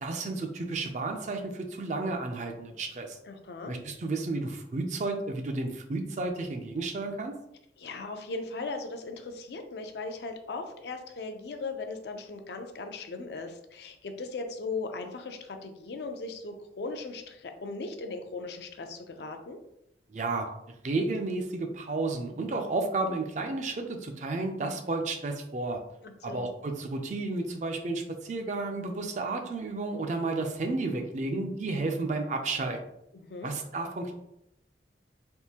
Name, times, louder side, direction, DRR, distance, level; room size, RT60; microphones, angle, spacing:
voice 1, 0.0-3.2 3.7-7.3 20.1-20.5 20.8-25.8 26.2-32.8 33.4-34.1, right 3 dB, 40° right, 4 dB, 0.4 m, -32 dB
voice 2, 3.2-3.7 7.8-19.6 26.0-26.5 33.1-33.5, left 3 dB, 70° left, 5 dB, 0.4 m, -38 dB
3.6 x 2.5 x 2.8 m, 0.80 s
head